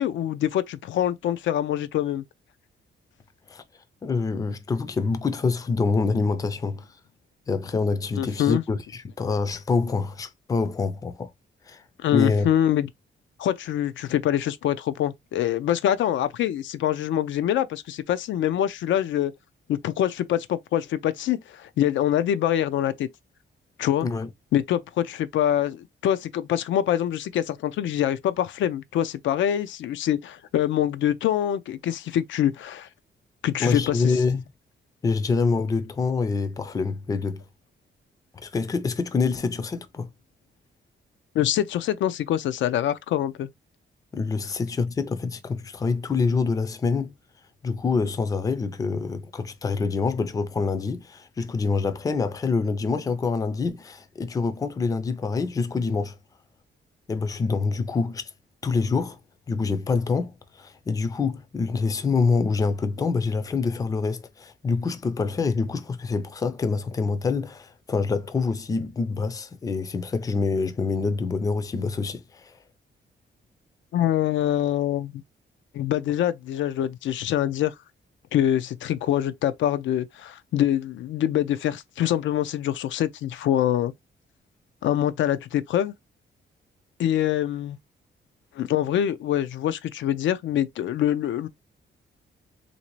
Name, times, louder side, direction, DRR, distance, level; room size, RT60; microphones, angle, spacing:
voice 1, 0.0-2.2 8.2-8.6 12.0-12.9 13.4-19.3 19.7-23.1 23.8-24.1 24.5-32.9 33.4-34.2 41.3-43.5 73.9-75.1 75.7-77.7 78.3-83.9 84.8-85.9 87.0-87.8 88.6-91.5, left 11 dB, 85° left, 0.4 m, -25 dB
voice 2, 4.0-6.9 7.5-11.3 11.7-11.8 12.1-12.5 24.0-24.3 33.6-34.4 35.0-37.4 38.4-40.1 44.1-47.1 47.6-56.2 57.1-58.3 58.6-59.2 59.5-72.5, left 4 dB, 20° left, 0.4 m, -26 dB
3.2 x 2.6 x 3.0 m
wide cardioid pair, 160°, 19 cm